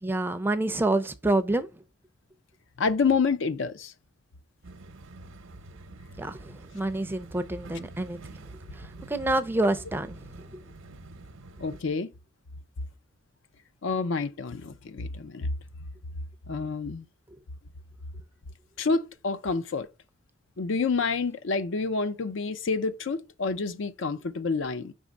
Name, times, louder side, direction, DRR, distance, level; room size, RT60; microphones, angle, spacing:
voice 1, 0.0-1.7 6.2-8.2 8.7-10.2, right 2 dB, 10° right, 0.4 m, -27 dB
voice 2, 2.8-3.9 11.6-12.1 13.8-15.5 16.5-17.1 18.8-19.9 20.6-24.9, left 4 dB, 65° left, 0.5 m, -28 dB
sound 1, 4.6-11.8, right 2 dB, 80° right, 0.7 m, -46 dB
5.1 x 3.6 x 5.2 m
head